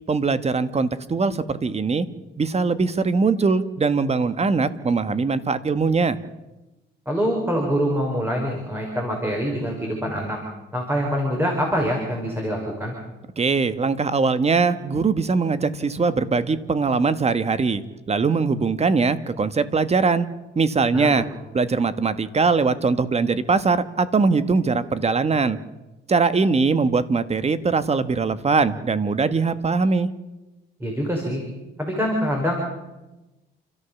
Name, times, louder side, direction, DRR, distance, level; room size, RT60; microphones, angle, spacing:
voice 1, 0.1-2.1 2.4-6.2 13.4-17.8 18.1-20.3 20.5-21.2 21.5-25.6 26.1-30.1, right 4 dB, 30° right, 13 dB, 1.4 m, -21 dB
voice 2, 7.1-10.4 10.7-12.9 20.9-21.2 30.8-31.4 31.8-32.6, equal, 10° right, 0 dB, 5.4 m, -25 dB
29.5 x 13.5 x 7.2 m, 1.1 s
cardioid pair, 90°, 20 cm